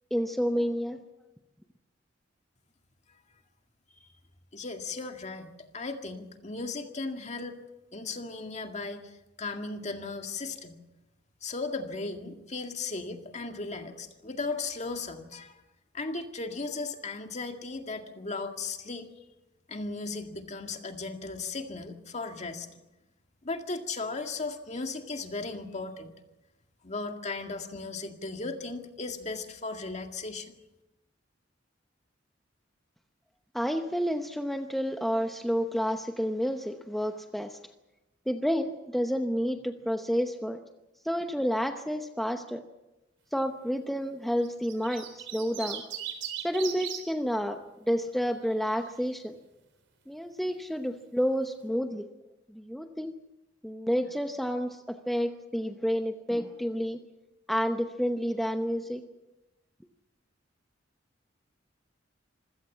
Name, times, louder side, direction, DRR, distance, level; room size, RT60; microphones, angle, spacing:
voice 1, 0.1-1.0 33.5-37.6 38.3-40.6 41.0-42.6 43.3-45.9 46.4-47.6 47.9-49.4 50.1-52.1 52.5-53.1 53.6-57.0 57.5-59.0, equal, ahead, 6 dB, 0.8 m, -30 dB
voice 2, 4.5-7.6 7.9-10.8 11.4-15.6 15.9-19.1 19.7-22.7 23.4-26.1 26.8-30.6, left 3 dB, 40° left, 5 dB, 2.0 m, -36 dB
sound 1, 44.4-47.0 48.3-48.7, right 9 dB, 90° right, 3.9 m, -37 dB
25.5 x 16.5 x 7.3 m, 1.0 s
head